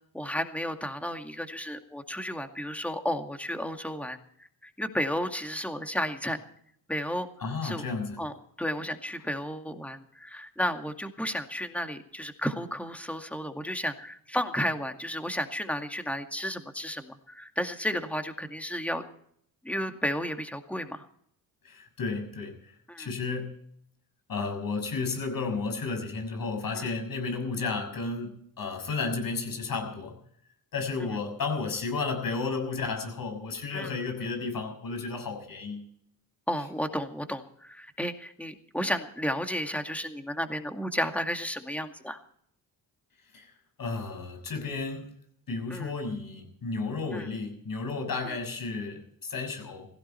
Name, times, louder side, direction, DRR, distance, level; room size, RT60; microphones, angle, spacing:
voice 1, 0.1-4.2 4.6-6.4 6.9-7.3 7.6-7.8 8.2-19.0 19.6-21.0 22.9-23.1 26.8-26.9 31.0-31.1 33.7-33.9 36.5-42.2 45.7-45.9 47.1-47.3 48.2-48.3, equal, 5° left, 6 dB, 2.2 m, -33 dB
voice 2, 7.4-8.2 21.6-23.5 24.3-30.2 30.7-35.8 43.3-43.5 43.8-45.1 45.5-49.9, left 4 dB, 55° left, 6 dB, 6.5 m, -33 dB
17.5 x 15.5 x 4.5 m, 0.66 s
cardioid pair, 75°, 40 cm